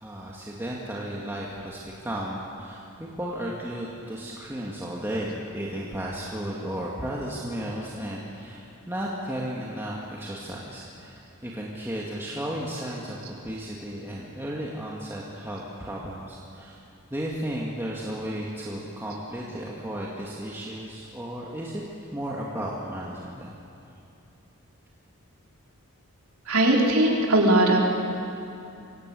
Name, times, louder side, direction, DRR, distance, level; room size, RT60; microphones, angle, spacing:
voice 1, 0.0-16.8 17.1-21.8 22.1-23.5, right 1 dB, 10° right, -5 dB, 2.1 m, -34 dB
voice 2, 26.5-27.8, right 1 dB, 70° right, -1 dB, 3.7 m, -19 dB
26.0 x 17.0 x 8.5 m, 2.8 s
head